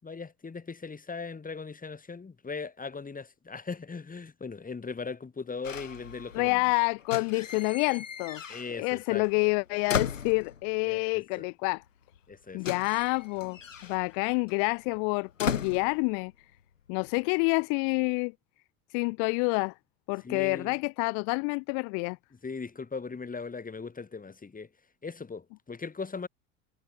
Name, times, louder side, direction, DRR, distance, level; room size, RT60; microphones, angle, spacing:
voice 1, 0.0-6.6 8.5-9.3 10.9-11.5 12.3-12.6 20.2-20.7 22.4-24.7 25.0-26.3, left 4 dB, 20° left, 4.8 m, -39 dB
sound 1, 5.6-6.6 7.0-9.0 9.2-10.8 11.8-11.9 12.1-16.6 16.9-17.3, left 7 dB, 90° left, 1.4 m, -37 dB
voice 2, 6.3-8.4 8.7-11.8 12.5-16.3 16.9-18.3 18.9-19.7 20.1-22.2, left 40 dB or more, 55° left, 0.5 m, -28 dB
figure-of-eight pair, 65°, 37 cm